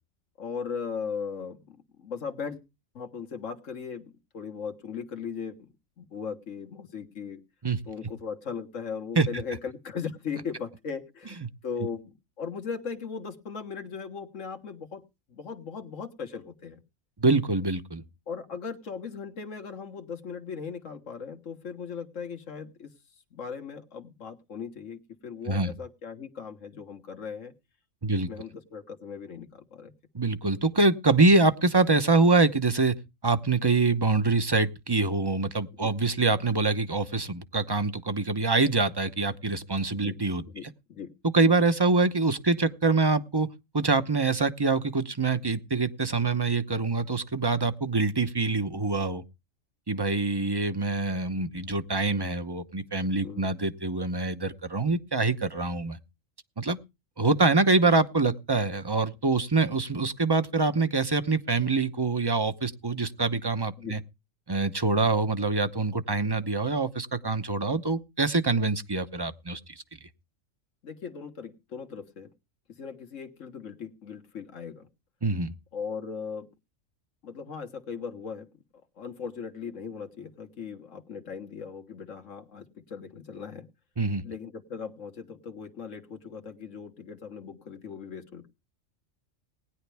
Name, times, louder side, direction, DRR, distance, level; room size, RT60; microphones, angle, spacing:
voice 1, 0.4-2.6 2.9-7.4 7.8-15.0 15.3-16.8 18.3-22.9 23.3-27.5 28.1-29.9 35.7-35.9 39.9-40.2 40.5-41.1 41.4-41.5 53.2-53.5 63.8-64.0 70.8-72.3 72.7-74.9 75.7-76.5 77.2-78.5 79.0-83.7 84.2-88.5, left 6 dB, 75° left, 1.8 m, -38 dB
voice 2, 17.2-18.0 25.5-25.7 28.0-28.3 30.1-33.0 33.2-40.4 41.3-43.5 43.7-49.2 49.9-56.0 56.6-56.8 57.2-64.0 64.5-69.6 75.2-75.5 84.0-84.2, right 3 dB, 25° right, 0.8 m, -25 dB
19.0 x 10.5 x 3.4 m
omnidirectional pair, 1.3 m